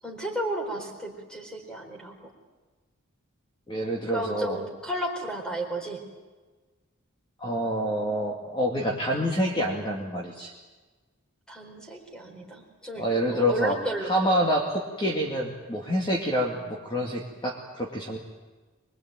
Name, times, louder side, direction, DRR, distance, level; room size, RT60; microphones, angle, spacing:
voice 1, 0.0-2.2 4.1-6.0 11.5-13.0 13.3-14.3, right 1 dB, 5° left, 2 dB, 4.3 m, -33 dB
voice 2, 3.7-4.6 7.4-10.5 13.0-18.2, equal, 20° left, -1 dB, 2.4 m, -27 dB
24.5 x 22.5 x 9.1 m, 1.3 s
head